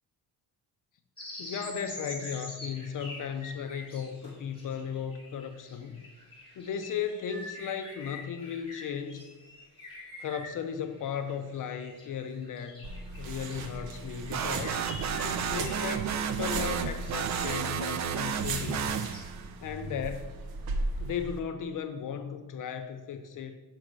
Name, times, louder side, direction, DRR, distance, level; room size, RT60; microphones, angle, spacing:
sound 1, 1.2-16.5 17.0-19.2, left 2 dB, 15° left, 2.9 m, -46 dB
voice 1, 1.4-6.0 6.6-9.3 10.2-12.9 13.2-14.9 15.2-19.1 19.6-20.3 21.0-23.6, left 7 dB, 50° left, 7 dB, 0.7 m, -36 dB
sound 2, 12.8-21.4, right 3 dB, 55° right, 1.0 m, -37 dB
sound 3, 14.3-19.5, right 7 dB, 40° right, 0.5 m, -32 dB
6.2 x 5.9 x 6.6 m, 1.2 s
cardioid pair, 145°, 41 cm